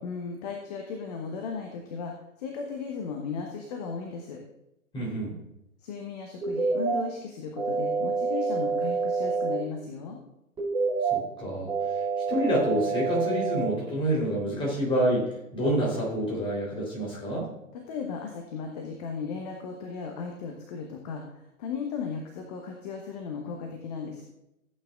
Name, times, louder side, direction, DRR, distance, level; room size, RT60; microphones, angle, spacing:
voice 1, 0.0-4.4 5.8-10.2 17.7-24.2, left 5 dB, 30° left, 3 dB, 1.1 m, -36 dB
voice 2, 4.9-5.3 11.1-17.5, equal, 10° left, -4 dB, 3.5 m, -28 dB
sound 1, 6.4-7.0 7.6-9.6 10.6-11.2 11.7-13.7, right 4 dB, 10° right, 4.0 m, -27 dB
15.5 x 8.7 x 2.4 m, 0.86 s
figure-of-eight pair, 120°, 42 cm